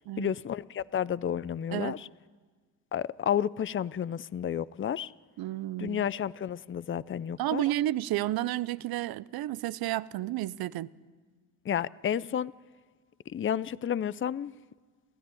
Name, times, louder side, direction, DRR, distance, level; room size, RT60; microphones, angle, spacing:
voice 1, 0.2-2.1 2.9-5.1 5.8-7.6 11.7-12.5 13.3-14.5, left 9 dB, 35° left, 0.6 m, -31 dB
voice 2, 5.4-6.0 7.4-10.9, right 15 dB, 70° right, 0.8 m, -31 dB
29.5 x 13.5 x 10.0 m
supercardioid pair, 60°, 37 cm